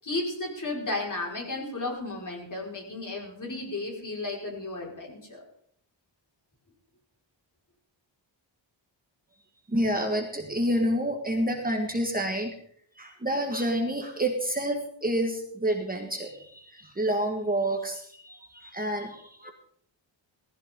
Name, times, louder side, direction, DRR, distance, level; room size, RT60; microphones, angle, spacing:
voice 1, 0.0-5.4, left 2 dB, 40° left, -1 dB, 5.2 m, -34 dB
voice 2, 9.7-12.5 12.9-19.5, right 1 dB, 20° right, 2 dB, 1.7 m, -28 dB
18.0 x 15.5 x 3.8 m, 0.65 s
wide cardioid pair, 160°, 46 cm